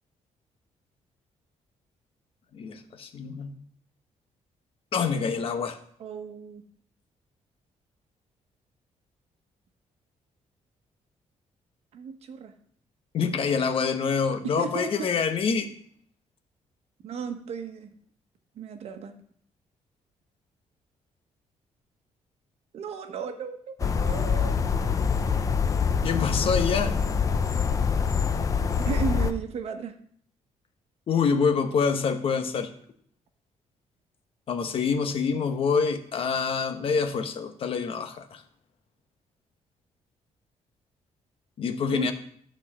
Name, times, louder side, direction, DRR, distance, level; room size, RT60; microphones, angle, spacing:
voice 1, 2.5-3.6 4.9-5.8 13.1-15.7 26.0-27.0 31.1-32.7 34.5-38.4 41.6-42.1, left 5 dB, 50° left, 8 dB, 1.1 m, -26 dB
voice 2, 6.0-6.6 11.9-12.5 14.4-15.1 17.0-17.9 18.6-19.1 22.7-24.5 28.8-30.0 41.9-42.1, right 6 dB, 55° right, 7 dB, 1.2 m, -34 dB
sound 1, 23.8-29.3, left 6 dB, 25° left, 0.6 m, -25 dB
13.0 x 4.5 x 7.4 m, 0.62 s
cardioid pair, 170°, 12 cm